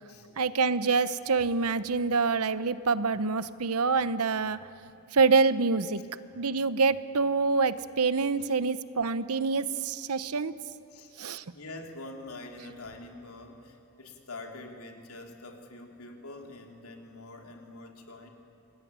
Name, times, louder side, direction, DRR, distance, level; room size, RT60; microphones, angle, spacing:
voice 1, 0.4-4.6 5.1-6.0 6.4-10.5 11.2-11.4, right 4 dB, 75° right, 14 dB, 0.9 m, -26 dB
voice 2, 11.5-18.3, left 2 dB, 70° left, 3 dB, 3.2 m, -45 dB
26.5 x 21.0 x 9.5 m, 2.6 s
head